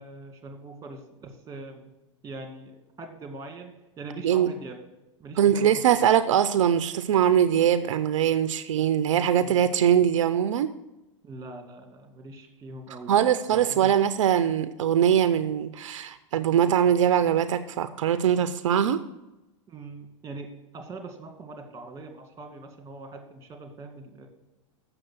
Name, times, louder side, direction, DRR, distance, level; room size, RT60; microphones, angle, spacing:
voice 1, 0.0-1.9 2.2-4.8 5.2-5.8 9.3-9.6 11.2-14.0 19.7-24.3, right 2 dB, 20° right, 5 dB, 1.9 m, -42 dB
voice 2, 5.4-10.7 13.1-19.0, right 9 dB, 80° right, 12 dB, 0.5 m, -22 dB
7.8 x 6.2 x 6.2 m, 0.97 s
hypercardioid pair, 110°, 16 cm